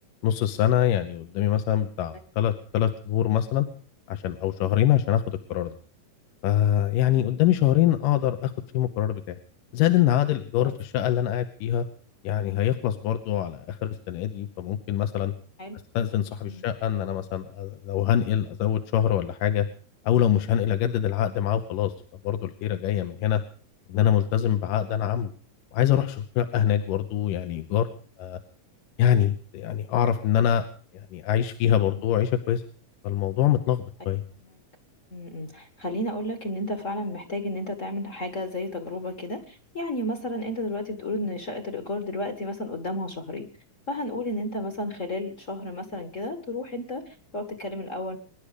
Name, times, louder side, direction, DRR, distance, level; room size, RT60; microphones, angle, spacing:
voice 1, 0.2-3.7 4.1-5.8 6.4-9.4 9.7-11.9 12.2-15.3 15.9-19.7 20.0-21.9 22.2-23.4 23.9-25.3 25.7-27.9 28.2-28.4 29.0-30.6 30.9-32.6 33.0-34.2, left 11 dB, 80° left, 8 dB, 2.6 m, -24 dB
voice 2, 35.1-43.5 43.9-48.2, left 1 dB, 35° left, 7 dB, 1.2 m, -32 dB
25.5 x 11.0 x 5.1 m, 0.42 s
omnidirectional pair, 3.8 m